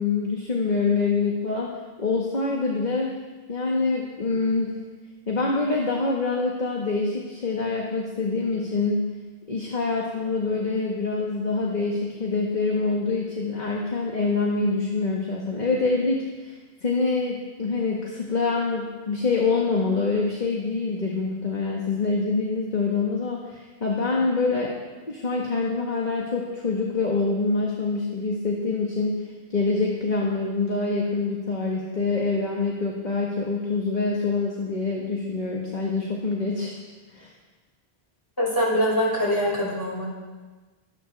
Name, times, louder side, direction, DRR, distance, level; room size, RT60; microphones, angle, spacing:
voice 1, 0.0-3.1 3.5-4.8 5.3-9.1 9.5-24.7 25.1-36.7 37.1-37.3, left 3 dB, 45° left, -2 dB, 1.8 m, -25 dB
voice 2, 38.4-40.1, equal, 20° left, -5 dB, 5.4 m, -23 dB
25.0 x 12.0 x 3.5 m, 1.3 s
omnidirectional pair, 1.1 m